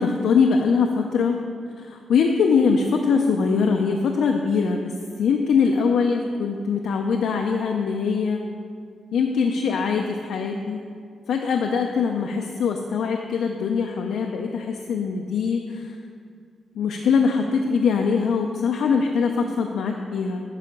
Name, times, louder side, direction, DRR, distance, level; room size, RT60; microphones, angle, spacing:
voice 1, 0.0-1.4 1.8-8.4 9.1-10.8 11.3-15.9 16.8-20.4, left 5 dB, 90° left, 3 dB, 0.5 m, -22 dB
9.7 x 5.7 x 5.2 m, 2.2 s
wide cardioid pair, 125°, 0 cm